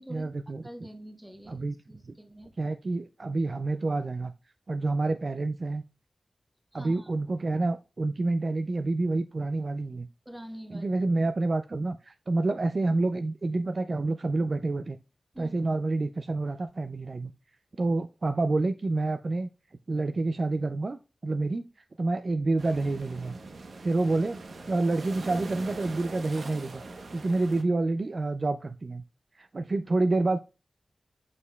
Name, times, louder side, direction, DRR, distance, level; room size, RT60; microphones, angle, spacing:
voice 1, 0.1-0.6 1.5-1.8 2.0-2.2 2.6-4.3 4.7-5.8 6.7-10.1 10.7-15.0 15.4-17.3 17.8-19.5 19.9-21.0 21.2-21.6 22.0-23.3 23.8-24.4 24.7-26.8 27.1-29.0 29.3-30.4, right 2 dB, 45° right, 9 dB, 0.3 m, -28 dB
voice 2, 0.6-2.5 6.7-7.1 10.2-10.9 15.3-15.5, equal, 10° right, 4 dB, 1.2 m, -45 dB
sound 1, 22.6-27.6, right 3 dB, 75° right, 0.8 m, -42 dB
7.3 x 6.4 x 2.2 m, 0.30 s
wide cardioid pair, 95°, 0 cm